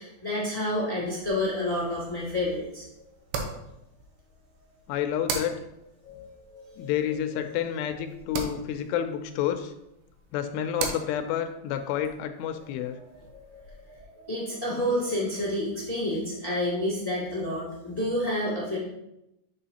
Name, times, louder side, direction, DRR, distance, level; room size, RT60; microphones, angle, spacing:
voice 1, 0.0-2.8 6.0-6.9 7.3-7.5 13.3-18.8, left 1 dB, 15° left, -8 dB, 0.6 m, -30 dB
sound 1, 1.2-14.0, right 4 dB, 80° right, 2.8 m, -41 dB
voice 2, 4.9-5.6 6.8-9.7 10.3-13.0, left 10 dB, 85° left, 8 dB, 2.6 m, -29 dB
8.2 x 5.5 x 2.8 m, 0.86 s
omnidirectional pair, 4.9 m